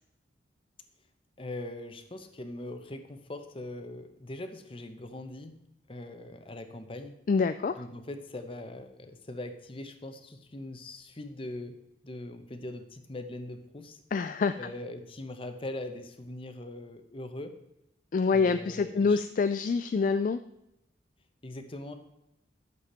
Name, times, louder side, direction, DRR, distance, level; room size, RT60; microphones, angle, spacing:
voice 1, 1.4-5.6 5.9-7.2 7.8-14.0 14.6-17.5 18.3-19.2 21.4-21.9, left 1 dB, 30° left, 8 dB, 0.9 m, -41 dB
voice 2, 7.3-7.8 14.1-14.7 18.1-20.4, left 4 dB, 45° left, 10 dB, 0.3 m, -26 dB
11.5 x 7.2 x 4.3 m, 0.85 s
head